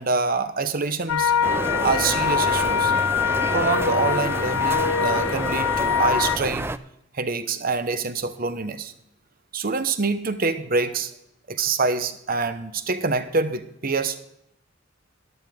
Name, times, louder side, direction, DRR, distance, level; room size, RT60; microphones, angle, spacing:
voice 1, 0.0-1.3 1.8-2.9 3.5-6.7 7.1-8.9 9.5-11.1 11.5-14.2, right 4 dB, 45° right, 11 dB, 0.9 m, -25 dB
sound 1, 1.1-6.4, left 7 dB, 80° left, 0.5 m, -23 dB
sound 2, 1.4-6.8, right 2 dB, 10° right, 0.3 m, -29 dB
13.5 x 12.0 x 3.6 m, 0.79 s
head